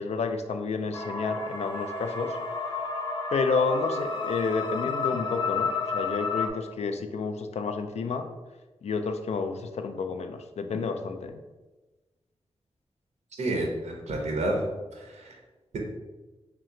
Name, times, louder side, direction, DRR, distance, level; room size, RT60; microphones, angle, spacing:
voice 1, 0.0-2.4 3.3-8.3 8.8-11.4, left 4 dB, 75° left, 7 dB, 0.4 m, -30 dB
sound 1, 0.9-6.5, left 4 dB, 45° left, 0.7 m, -31 dB
voice 2, 13.4-14.7 14.9-15.4, right 1 dB, 90° right, 0 dB, 0.8 m, -29 dB
3.2 x 2.9 x 3.7 m, 1.2 s
cardioid pair, 70°, 11 cm